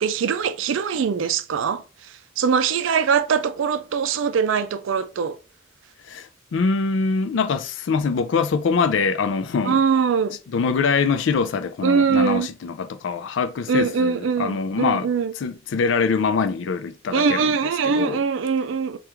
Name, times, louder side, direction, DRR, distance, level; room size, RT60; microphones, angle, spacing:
voice 1, 0.0-5.4 9.7-10.4 11.8-12.5 13.7-15.3 17.1-19.0, right 6 dB, 85° right, 0.4 m, -22 dB
voice 2, 6.1-9.8 10.5-15.1 15.4-17.5 17.8-18.2, left 5 dB, 70° left, 0.4 m, -24 dB
3.4 x 2.4 x 2.9 m
head